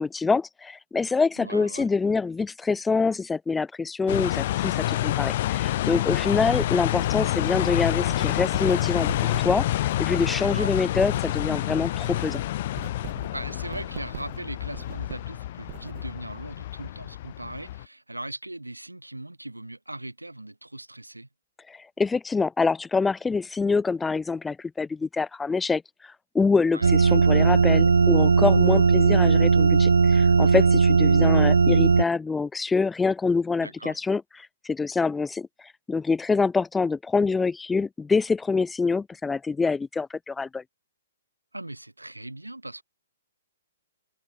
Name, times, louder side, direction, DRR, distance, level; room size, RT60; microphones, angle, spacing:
voice 1, 0.0-9.6 10.0-12.4 21.7-25.8 26.3-34.2 34.6-35.5 35.9-40.6, left 4 dB, 10° left, 0.9 m, -25 dB
voice 2, 1.4-1.9 10.5-10.7 13.3-21.3 26.7-26.9 33.6-34.0 41.5-42.8, right 1 dB, 85° right, 5.6 m, -39 dB
sound 1, 4.1-17.9, left 14 dB, 45° left, 3.1 m, -28 dB
Writing, 6.5-11.5 11.8-16.4, right 15 dB, 40° right, 3.4 m, -43 dB
sound 2, 26.8-32.0, right 5 dB, 65° right, 0.6 m, -18 dB
figure-of-eight pair, 120°, 0 cm